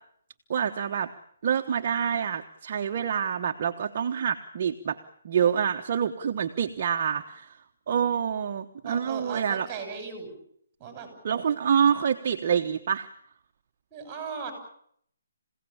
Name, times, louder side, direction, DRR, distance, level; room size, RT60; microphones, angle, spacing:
voice 1, 0.5-1.1 1.4-5.0 5.2-7.6 7.9-9.7 11.2-13.1, right 8 dB, 40° right, 4 dB, 1.2 m, -26 dB
voice 2, 8.8-10.3 10.8-11.1 13.9-14.5, right 5 dB, 15° right, 6 dB, 6.8 m, -37 dB
27.0 x 17.0 x 8.7 m, 0.67 s
hypercardioid pair, 165°, 0 cm